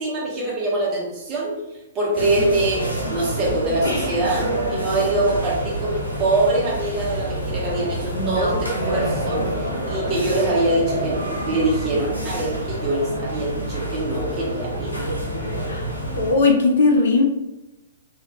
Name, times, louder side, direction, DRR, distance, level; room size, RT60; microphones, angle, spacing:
voice 1, 0.0-1.6 1.9-14.9, right 2 dB, 25° right, -4 dB, 1.2 m, -24 dB
sound 1, 2.2-16.3, right 1 dB, 85° left, 1.0 m, -27 dB
voice 2, 8.1-9.4 15.7-15.9 16.2-17.2, left 3 dB, 60° left, 2 dB, 0.6 m, -20 dB
3.2 x 2.7 x 3.0 m, 1.0 s
figure-of-eight pair, 115°, 0 cm